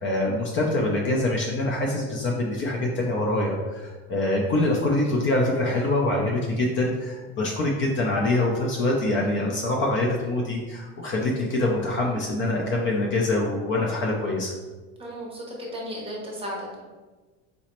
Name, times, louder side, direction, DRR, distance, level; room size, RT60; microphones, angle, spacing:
voice 1, 0.0-14.5, left 2 dB, 35° left, -1 dB, 0.5 m, -25 dB
voice 2, 15.0-16.8, equal, 15° right, -3 dB, 0.7 m, -35 dB
3.9 x 2.0 x 2.9 m, 1.3 s
supercardioid pair, 125°, 36 cm